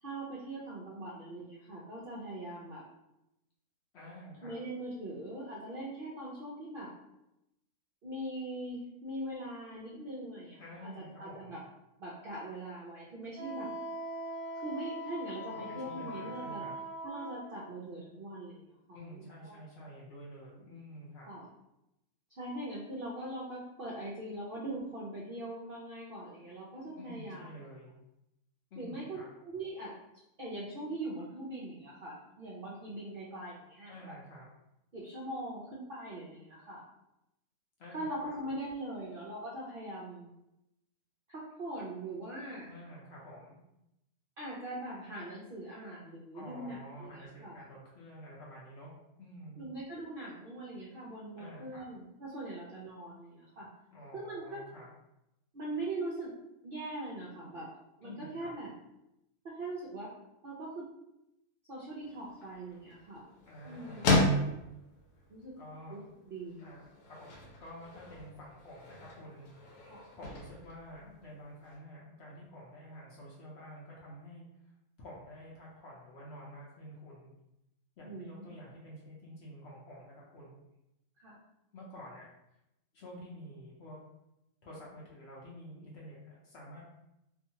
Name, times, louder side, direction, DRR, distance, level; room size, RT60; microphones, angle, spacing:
voice 1, 0.0-2.8 4.4-6.9 8.0-11.6 12.0-13.7 14.6-16.6 17.0-19.6 21.2-21.5 22.3-27.5 28.8-29.9 30.4-34.1 34.9-36.9 37.9-40.3 41.3-42.7 44.4-47.7 49.6-53.7 54.1-54.6 55.5-56.4 56.6-57.7 58.0-58.7 59.4-60.1 60.4-60.9 61.7-63.3 63.6-64.1 65.3-65.5 65.9-66.0 66.3-66.6 69.8-70.0 78.0-78.6 81.2-81.4, right 1 dB, 65° right, -6 dB, 0.5 m, -41 dB
voice 2, 3.9-4.6 10.6-11.6 15.5-16.7 18.9-21.3 26.9-27.9 28.7-29.3 33.9-34.5 37.8-38.3 42.7-43.6 46.3-49.6 51.4-51.8 53.9-54.9 58.0-58.5 63.5-64.5 65.6-66.0 66.6-67.3 67.6-69.5 70.1-74.4 75.0-77.3 78.0-80.6 81.7-82.3 82.9-84.0 84.6-86.8, equal, 60° left, -5 dB, 0.8 m, -49 dB
Wind instrument woodwind instrument, 13.3-17.5, right 1 dB, 15° left, 0.8 m, -41 dB
sound 1, 62.0-71.8, left 2 dB, 80° left, 1.1 m, -36 dB
2.7 x 2.4 x 2.7 m, 0.88 s
omnidirectional pair, 1.5 m